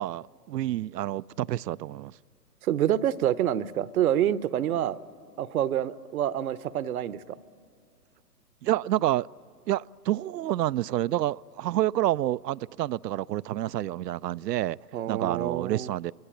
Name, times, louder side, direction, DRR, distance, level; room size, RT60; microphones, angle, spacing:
voice 1, 0.0-2.1 8.6-9.3 9.7-14.8 15.1-16.1, right 14 dB, 75° right, 0.6 m, -28 dB
voice 2, 2.6-5.0 5.4-7.4 14.9-15.9, right 11 dB, 60° right, 0.9 m, -27 dB
24.5 x 22.5 x 9.9 m
hypercardioid pair, 135°, 49 cm